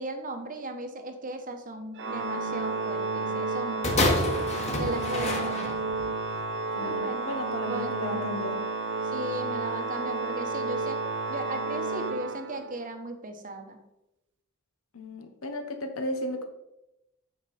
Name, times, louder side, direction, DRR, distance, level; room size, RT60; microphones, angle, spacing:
voice 1, 0.0-4.3 4.8-5.8 6.7-7.3 7.6-8.2 9.0-11.0 11.3-13.8, right 2 dB, 40° right, 6 dB, 1.0 m, -37 dB
Organ, 2.0-12.9, right 3 dB, 55° right, 0.6 m, -31 dB
sound 1, 3.8-6.1 6.9-7.0, left 2 dB, 35° left, 1.5 m, -28 dB
voice 2, 6.7-8.6 14.9-16.4, left 1 dB, 80° left, 6 dB, 1.1 m, -34 dB
8.4 x 5.9 x 4.2 m, 0.90 s
head